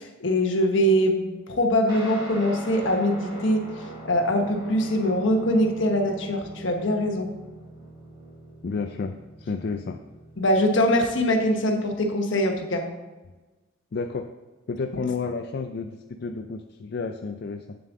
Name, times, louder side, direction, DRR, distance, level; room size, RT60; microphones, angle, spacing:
voice 1, 0.0-7.3 10.4-12.8, equal, 70° left, 3 dB, 1.2 m, -23 dB
Guitar, 1.9-11.6, right 1 dB, 25° right, 2.8 m, -42 dB
voice 2, 8.6-10.0 13.9-14.3 14.7-17.8, left 4 dB, 55° left, 5 dB, 0.4 m, -31 dB
8.6 x 7.2 x 3.7 m, 1.2 s
head